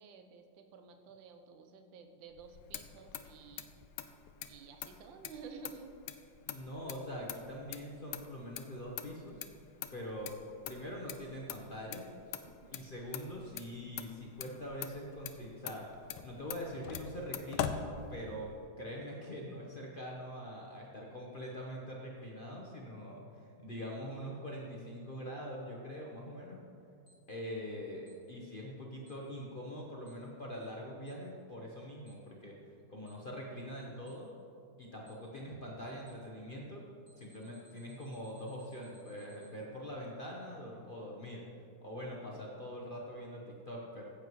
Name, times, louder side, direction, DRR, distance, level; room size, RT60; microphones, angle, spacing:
voice 1, 0.0-3.7 4.5-5.9 12.6-12.9, right 5 dB, 70° right, 6 dB, 1.4 m, -52 dB
Motor vehicle (road), 2.3-18.6, left 9 dB, 85° left, 1.4 m, -44 dB
voice 2, 6.4-9.4 9.9-10.3 10.6-12.4 12.7-15.8 16.2-17.8 18.1-26.6 27.3-32.5 32.9-34.3 34.8-36.8 37.2-41.4 41.8-44.1, equal, 50° left, -3 dB, 0.6 m, -43 dB
Alarm, 27.1-27.2 28.1-28.2 29.1-29.2 30.1-30.2 31.1-31.2 32.1-32.2 33.1-33.2 34.1-34.2 35.1-35.2 36.1-36.2 37.1-39.5, equal, 25° left, 1.5 m, -64 dB
14.5 x 8.4 x 3.1 m, 2.5 s
omnidirectional pair, 2.3 m